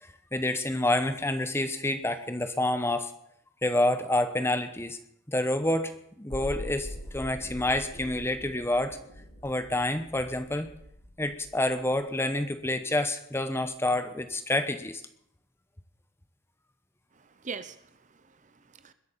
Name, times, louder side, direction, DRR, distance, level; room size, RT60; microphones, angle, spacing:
voice 1, 0.3-3.1 3.6-5.0 5.3-5.9 6.2-9.0 9.4-10.7 11.2-15.0, left 1 dB, 10° left, 9 dB, 1.0 m, -28 dB
sound 1, 6.3-12.3 12.6-12.7, equal, 65° left, 6.8 m, -43 dB
voice 2, 17.1-18.9, right 5 dB, 35° right, 12 dB, 0.9 m, -43 dB
21.0 x 8.4 x 7.3 m, 0.73 s
head